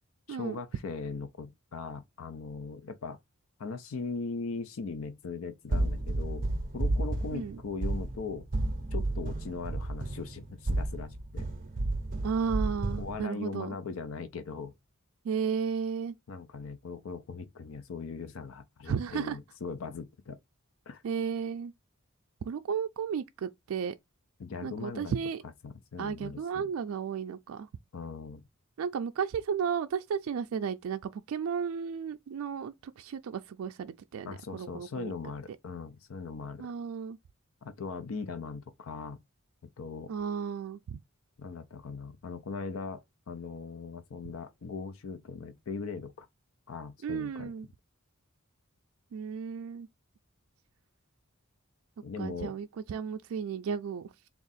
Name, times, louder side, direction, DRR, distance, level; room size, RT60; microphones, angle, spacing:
voice 1, 0.3-3.2 3.6-6.5 6.7-8.4 8.9-11.5 13.0-14.7 16.3-20.4 20.9-21.0 24.4-25.1 25.6-26.6 27.9-28.4 34.2-36.7 37.6-39.2 39.8-40.1 41.4-46.3 46.7-47.5 52.0-52.6, left 4 dB, 70° left, 0.5 m, -39 dB
sound 1, 5.7-13.2, right 2 dB, 40° right, 0.6 m, -32 dB
voice 2, 12.2-13.8 15.2-16.1 18.9-19.4 21.0-21.7 22.4-23.9 24.6-25.4 26.0-27.7 28.8-35.1 36.6-37.2 40.1-41.0 47.0-47.7 49.1-49.9 52.2-54.1, right 6 dB, 80° right, 0.3 m, -34 dB
3.6 x 2.4 x 4.0 m
head